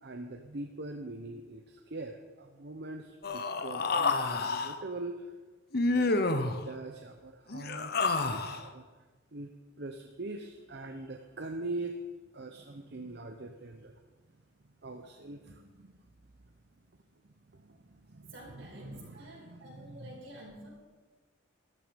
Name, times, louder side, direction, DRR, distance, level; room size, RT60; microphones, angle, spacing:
voice 1, 0.0-5.2 5.8-6.3 6.6-7.9 8.3-8.8 9.3-12.0 12.3-13.9 14.8-15.9 17.5-20.2, right 2 dB, 55° right, 5 dB, 0.8 m, -43 dB
Human voice, 3.2-4.7 5.7-6.6 7.5-8.6, left 3 dB, 55° left, 0.9 m, -29 dB
voice 2, 18.3-20.7, right 1 dB, 75° right, -3 dB, 5.3 m, -50 dB
14.0 x 12.5 x 5.2 m, 1.3 s
head